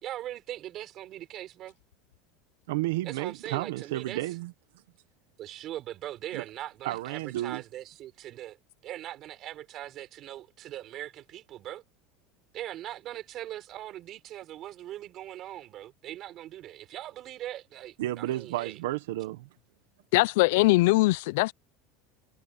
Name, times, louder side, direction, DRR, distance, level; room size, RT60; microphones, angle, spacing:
voice 1, 0.0-1.7 3.0-4.2 5.4-8.6 8.8-11.8 12.5-18.8, right 13 dB, 40° right, 4.5 m, -40 dB
voice 2, 2.7-4.5 6.3-6.4 6.8-7.6 18.0-19.5, right 16 dB, 85° right, 1.3 m, -32 dB
voice 3, 20.1-21.5, left 21 dB, 75° left, 0.5 m, -21 dB
supercardioid pair, 145°, 0 cm